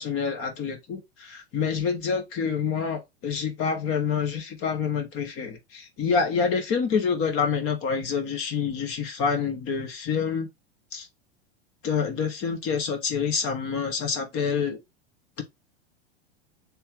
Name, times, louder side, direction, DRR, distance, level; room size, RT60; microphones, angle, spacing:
voice 1, 0.0-10.5 10.9-11.1 11.8-14.8, left 6 dB, 45° left, 1.6 m, -27 dB
3.4 x 3.3 x 4.6 m
hypercardioid pair, 90°, 31 cm